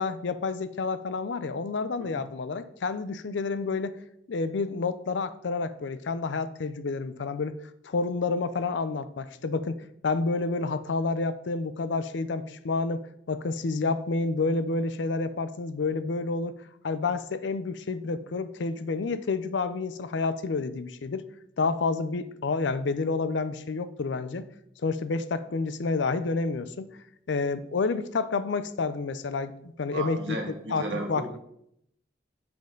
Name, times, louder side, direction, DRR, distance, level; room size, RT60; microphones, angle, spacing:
voice 1, 0.0-3.9 4.3-7.6 7.8-16.6 16.8-21.2 21.6-24.4 24.8-26.9 27.3-30.4 30.7-31.4, left 3 dB, 80° left, 13 dB, 0.5 m, -29 dB
voice 2, 29.9-31.4, right 2 dB, 80° right, 1 dB, 1.6 m, -34 dB
7.7 x 5.2 x 3.8 m, 0.74 s
head